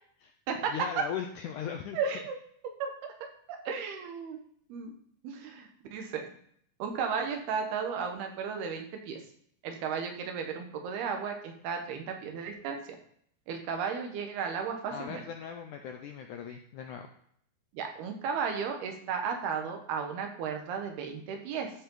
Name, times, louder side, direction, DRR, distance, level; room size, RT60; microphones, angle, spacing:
voice 1, 0.6-2.0 14.9-17.1, left 8 dB, 80° left, 4 dB, 1.8 m, -38 dB
voice 2, 1.9-2.4 2.8-3.1 3.5-4.4 4.7-5.0 5.2-6.3 6.8-9.2 9.6-12.8 13.5-15.2 17.7-21.7, right 6 dB, 85° right, 4 dB, 3.4 m, -34 dB
13.5 x 7.3 x 3.9 m, 0.64 s
omnidirectional pair, 4.4 m